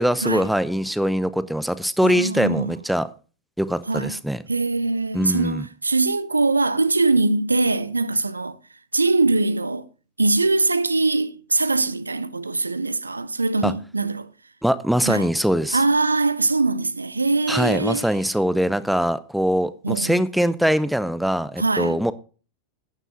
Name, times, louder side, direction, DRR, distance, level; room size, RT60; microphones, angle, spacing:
voice 1, 0.0-3.1 3.6-4.4 5.1-5.6 13.6-13.7 14.6-15.8 17.5-22.1, equal, ahead, 0.7 m, -22 dB
voice 2, 2.0-2.7 3.9-4.2 4.5-8.6 8.9-9.9 10.2-14.3 15.0-15.3 15.7-18.1 19.8-20.5 21.6-22.0, right 3 dB, 80° right, 0.6 m, -22 dB
12.0 x 9.3 x 3.8 m
figure-of-eight pair, 90°, 0 cm